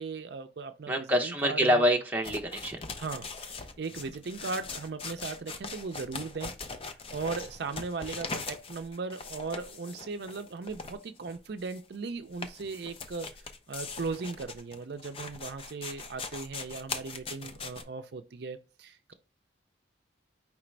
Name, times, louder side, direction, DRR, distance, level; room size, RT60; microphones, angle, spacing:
voice 1, 0.0-1.9 3.0-6.5 6.8-13.3 13.7-19.1, right 4 dB, 60° right, 0.4 m, -38 dB
voice 2, 0.9-2.8, equal, 10° right, 0.7 m, -26 dB
sound 1, 2.2-17.8, left 4 dB, 30° left, 0.5 m, -41 dB
5.0 x 3.2 x 3.2 m
head